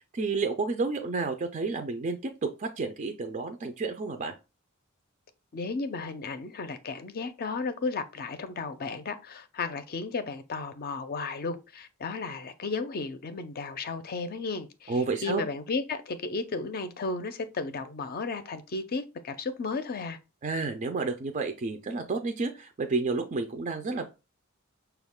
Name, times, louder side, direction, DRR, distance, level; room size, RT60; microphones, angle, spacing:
voice 1, 0.1-4.3 14.9-15.4 20.4-24.0, right 3 dB, 35° right, 0.4 m, -30 dB
voice 2, 5.5-20.2, left 4 dB, 45° left, 0.5 m, -34 dB
5.6 x 2.3 x 3.5 m
head